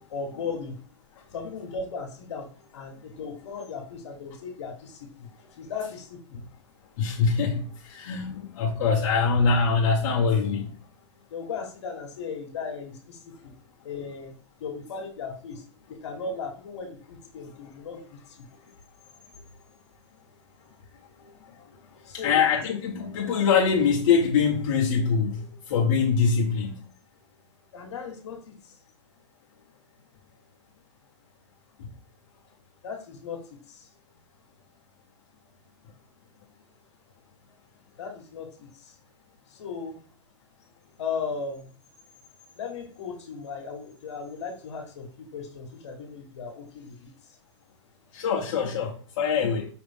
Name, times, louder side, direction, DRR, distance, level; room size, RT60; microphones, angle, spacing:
voice 1, 0.1-0.7 1.3-6.5 11.3-13.5 13.8-14.3 14.6-15.6 15.9-18.4 22.0-22.4 27.7-28.7 32.8-33.9 38.0-39.0 39.5-40.0 41.0-41.7 42.5-47.1, left 5 dB, 65° left, 1.3 m, -37 dB
voice 2, 7.0-10.7 22.1-26.8 48.1-49.7, left 5 dB, 45° left, 1.0 m, -24 dB
5.0 x 2.9 x 3.5 m
hypercardioid pair, 155°, 16 cm